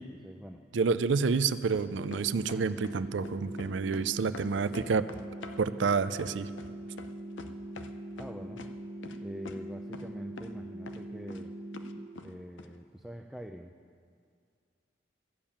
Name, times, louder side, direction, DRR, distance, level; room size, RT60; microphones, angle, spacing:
voice 1, 0.2-0.6 3.8-4.4 8.2-8.7 9.2-11.5 12.2-13.7, equal, ahead, 2 dB, 0.4 m, -45 dB
voice 2, 0.7-5.1 5.6-6.5, right 5 dB, 80° right, 14 dB, 0.4 m, -29 dB
sound 1, 1.7-3.0 3.2-4.1 4.3-7.9 8.2-8.7 9.0-9.2 9.4-9.6 9.9-10.1 10.4-10.5 10.9-11.4 11.7-12.3 12.6-12.7, left 3 dB, 90° left, 0.7 m, -45 dB
sound 2, 2.0-12.0, right 1 dB, 40° right, 0.9 m, -42 dB
13.5 x 7.2 x 8.6 m, 2.2 s
head